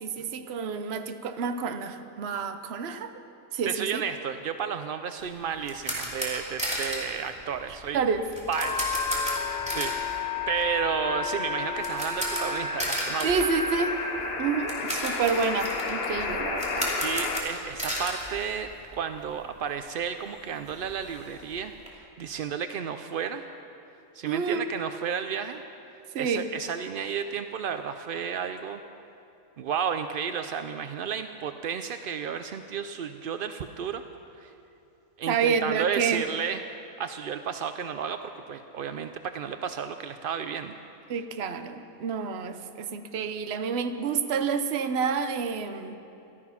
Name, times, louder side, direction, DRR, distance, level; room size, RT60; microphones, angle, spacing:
voice 1, 0.0-3.1 3.5-4.0 7.9-8.2 13.2-14.0 14.4-16.9 24.2-24.7 26.1-26.5 35.3-36.2 41.1-46.0, right 5 dB, 55° right, 9 dB, 0.9 m, -29 dB
voice 2, 3.6-8.0 8.5-8.9 9.7-13.3 17.0-23.4 24.1-25.6 26.1-28.8 29.6-34.0 34.4-34.5 35.2-36.6 37.0-40.8, right 7 dB, 75° right, 9 dB, 0.5 m, -32 dB
sound 1, 5.2-19.2 19.4-19.6 20.0-20.1 20.3-21.9, equal, 5° right, 2.4 m, -35 dB
sound 2, 8.5-17.4, left 4 dB, 45° left, 1.2 m, -31 dB
14.5 x 13.0 x 5.8 m, 2.7 s
omnidirectional pair, 1.5 m